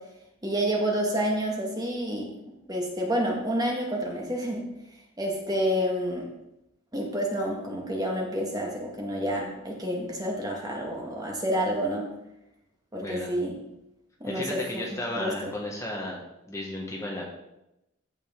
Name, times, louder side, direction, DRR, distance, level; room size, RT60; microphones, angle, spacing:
voice 1, 0.4-2.3 2.7-4.7 5.2-6.3 6.9-12.1 12.9-13.6 14.2-15.5, equal, 20° right, -1 dB, 1.8 m, -29 dB
voice 2, 13.0-13.3 14.3-16.2 16.5-17.2, left 1 dB, 15° left, -2 dB, 1.4 m, -34 dB
15.0 x 5.3 x 3.8 m, 0.88 s
head